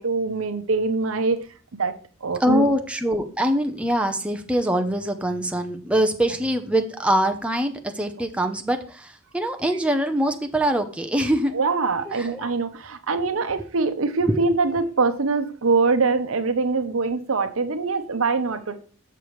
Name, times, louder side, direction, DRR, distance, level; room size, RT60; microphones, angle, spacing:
voice 1, 0.0-1.4 1.8-1.9 2.2-2.7 11.5-18.8, right 4 dB, 75° right, 9 dB, 0.8 m, -23 dB
voice 2, 2.4-11.5 12.1-12.5 13.1-13.2 14.3-14.4, equal, 5° right, 5 dB, 0.6 m, -23 dB
6.8 x 6.8 x 3.1 m, 0.39 s
head